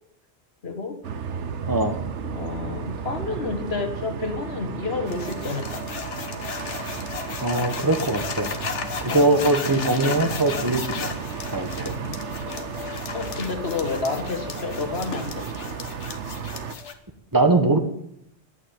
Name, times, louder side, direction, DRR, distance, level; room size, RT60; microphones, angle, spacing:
voice 1, 0.6-1.0 2.3-5.8 9.1-9.4 13.1-15.8, left 4 dB, 60° left, 7 dB, 1.8 m, -30 dB
sound 1, 1.0-16.7, right 6 dB, 85° right, 1.2 m, -33 dB
voice 2, 1.7-2.0 7.4-8.5 9.0-11.1 11.5-11.9 17.3-17.8, right 2 dB, 20° right, 7 dB, 1.4 m, -21 dB
sound 2, 5.1-16.9, left 6 dB, 90° left, 1.5 m, -34 dB
11.0 x 8.9 x 8.8 m, 0.75 s
omnidirectional pair, 1.2 m